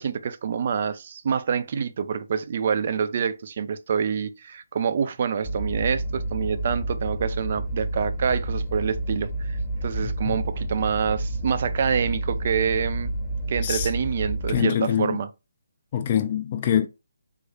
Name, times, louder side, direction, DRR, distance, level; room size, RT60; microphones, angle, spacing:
voice 1, 0.0-13.1 13.5-15.3, right 7 dB, 45° right, 0.4 m, -26 dB
sound 1, 5.4-14.6, right 1 dB, 10° left, 0.7 m, -29 dB
voice 2, 10.0-10.4 13.6-13.9 14.5-15.2 15.9-16.9, left 9 dB, 35° left, 0.3 m, -24 dB
3.6 x 2.0 x 3.2 m
figure-of-eight pair, 155°, 0 cm